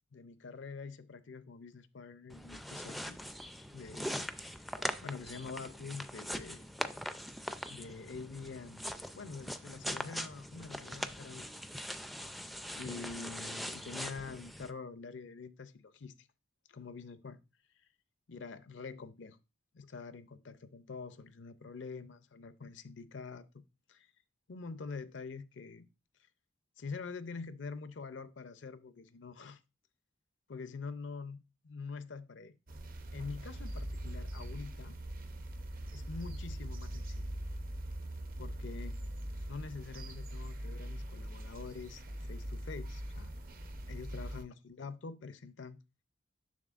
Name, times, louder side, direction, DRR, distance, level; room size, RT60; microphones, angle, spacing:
voice 1, 0.1-3.2 3.7-4.2 4.7-6.6 7.7-11.8 12.7-16.3 16.7-17.4 18.3-19.4 19.7-23.5 23.9-24.1 24.5-25.9 26.8-29.6 30.5-32.5 33.1-34.9 35.9-37.3 38.4-39.0 39.5-43.3 43.9-45.8, left 4 dB, 75° left, 0.5 m, -46 dB
sound 1, 2.3-14.7, equal, ahead, 0.4 m, -42 dB
sound 2, 32.7-44.4, right 1 dB, 50° right, 0.7 m, -42 dB
7.2 x 6.3 x 2.4 m
head